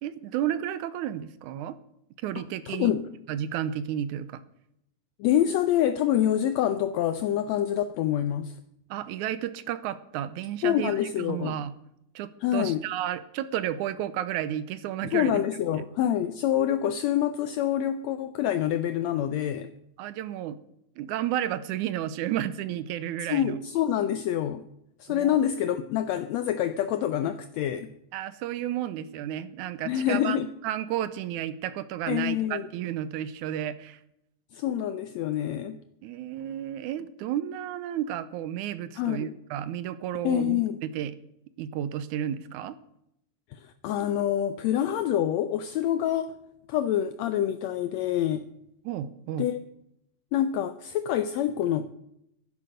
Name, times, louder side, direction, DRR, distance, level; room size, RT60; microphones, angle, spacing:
voice 1, 0.0-1.8 2.2-3.0 3.3-4.4 8.9-11.7 12.2-15.4 15.7-15.8 20.0-20.6 21.0-23.6 25.1-25.4 28.1-30.4 30.6-34.0 36.0-41.2 41.6-42.8 48.9-49.5, right 11 dB, 85° right, 2.1 m, -32 dB
voice 2, 2.7-3.1 5.2-8.5 10.6-11.6 12.4-12.8 15.1-19.7 23.3-24.7 25.0-27.9 29.9-30.5 32.1-32.7 34.5-35.8 39.0-39.3 40.2-40.8 43.8-46.3 46.7-48.4 49.4-49.6 50.3-51.9, left 11 dB, 75° left, 1.7 m, -26 dB
11.0 x 11.0 x 6.4 m
omnidirectional pair, 3.5 m